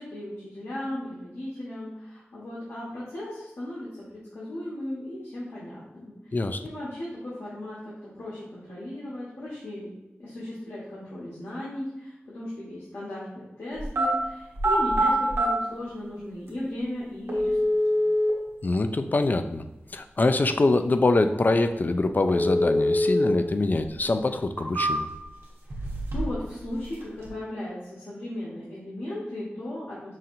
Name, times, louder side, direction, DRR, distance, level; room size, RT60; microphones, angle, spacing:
voice 1, 0.0-6.4 6.6-7.8 8.1-9.9 10.2-17.6 17.9-18.0 26.1-30.1, left 1 dB, 85° left, -8 dB, 1.1 m, -36 dB
sound 1, 13.8-14.1 14.5-15.5 16.5-16.6 17.3-18.3 22.3-23.3 23.7-23.8 24.4-25.3 25.7-26.4 26.7-27.3, equal, 80° right, 1.0 m, -24 dB
voice 2, 18.6-19.6 19.9-25.1, left 2 dB, 45° left, 9 dB, 0.3 m, -24 dB
5.5 x 2.7 x 2.5 m, 0.95 s
cardioid pair, 45°, 4 cm